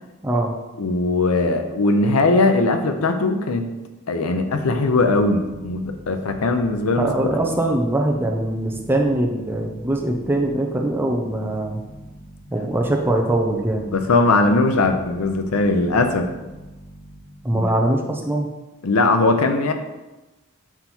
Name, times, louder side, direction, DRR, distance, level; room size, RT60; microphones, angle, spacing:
voice 1, 0.2-0.6 7.0-11.8 12.5-13.9 17.4-18.5, right 1 dB, 10° right, 1 dB, 0.6 m, -22 dB
voice 2, 0.8-3.7 4.1-7.1 13.9-16.3 17.5-17.7 18.8-19.7, left 2 dB, 90° left, 7 dB, 0.6 m, -19 dB
sound 1, 4.7-17.6, equal, 30° left, 1.4 m, -43 dB
5.9 x 4.1 x 4.4 m, 1.1 s
head